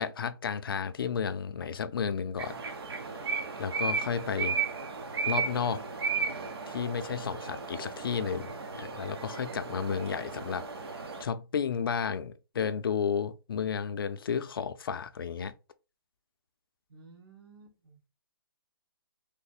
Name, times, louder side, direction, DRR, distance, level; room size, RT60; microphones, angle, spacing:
voice 1, 0.0-2.5 3.6-4.6 5.3-5.9 6.7-10.6 11.2-15.5, left 7 dB, 65° left, 0.4 m, -32 dB
sound 1, 2.4-11.2, right 5 dB, 90° right, 0.9 m, -35 dB
voice 2, 16.9-18.1, right 4 dB, 75° right, 1.5 m, -55 dB
3.2 x 2.1 x 4.0 m
hypercardioid pair, 175°, 13 cm